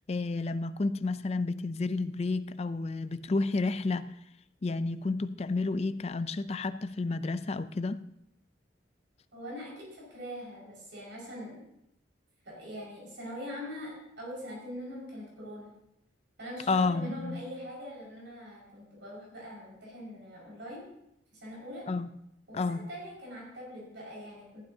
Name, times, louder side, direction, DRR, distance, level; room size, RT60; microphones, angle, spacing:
voice 1, 0.1-4.1 4.6-8.0 16.7-17.4 21.9-22.1 22.5-22.9, left 3 dB, 35° left, 0.4 m, -31 dB
voice 2, 9.3-11.6 12.4-15.7 16.4-20.9 21.3-21.9 22.5-24.6, equal, 75° right, 5.2 m, -43 dB
14.5 x 12.5 x 2.7 m
head